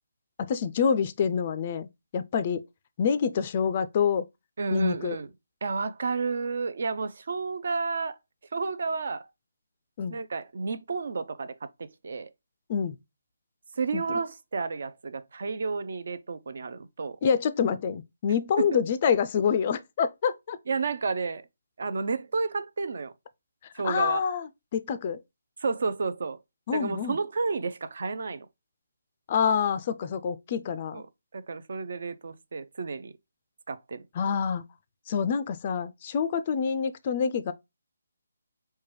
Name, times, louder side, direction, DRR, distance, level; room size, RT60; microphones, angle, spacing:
voice 1, 0.4-2.6 3.0-4.3 4.7-5.2 10.0-10.1 12.7-13.0 13.9-14.2 17.2-20.6 23.8-25.2 26.7-27.2 29.3-31.0 34.2-34.7 35.1-37.5, left 7 dB, 30° left, 0.3 m, -27 dB
voice 2, 4.6-5.3 5.6-8.2 8.5-9.3 10.1-12.3 13.8-17.2 18.6-18.8 20.7-21.4 21.8-23.1 23.8-24.2 25.6-26.4 26.7-28.5 30.9-31.0 31.3-33.1 33.7-34.0, right 4 dB, 55° right, 0.4 m, -31 dB
4.5 x 2.2 x 3.1 m
hypercardioid pair, 170°, 0 cm